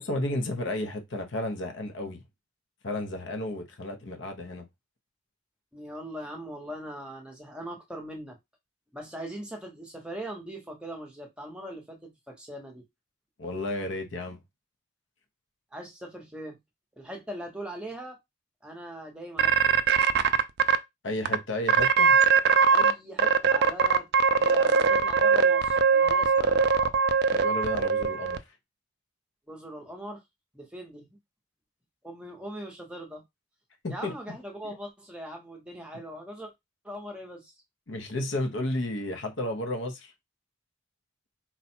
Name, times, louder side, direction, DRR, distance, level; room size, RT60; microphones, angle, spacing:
voice 1, 0.0-2.2 2.8-4.6 13.4-14.4 21.0-22.2 27.3-28.4 33.8-34.1 37.9-40.1, left 1 dB, 55° left, 0.8 m, -32 dB
voice 2, 5.7-8.4 8.9-12.8 15.7-16.6 17.0-18.2 18.6-19.8 22.7-26.6 29.5-30.2 30.5-31.2 32.0-33.2 33.9-36.5 36.8-37.5, equal, 5° right, 0.8 m, -40 dB
sound 1, 19.4-20.8 21.2-21.3 21.7-22.9 23.2-28.4, right 6 dB, 50° right, 0.4 m, -21 dB
4.1 x 2.3 x 4.3 m
head